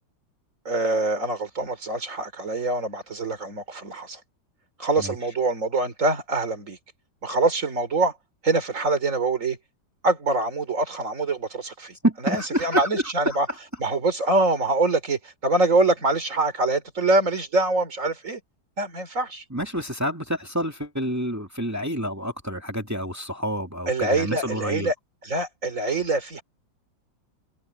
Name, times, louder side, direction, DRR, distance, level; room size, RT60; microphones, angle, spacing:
voice 1, 0.7-4.2 4.8-6.8 7.2-8.2 8.4-9.6 10.0-12.0 12.2-13.5 13.8-18.4 18.8-19.4 23.9-24.9 25.2-26.4, right 2 dB, 40° right, 3.8 m, -24 dB
voice 2, 12.0-13.0 19.5-24.9, equal, 10° right, 2.1 m, -28 dB
omnidirectional pair, 2.1 m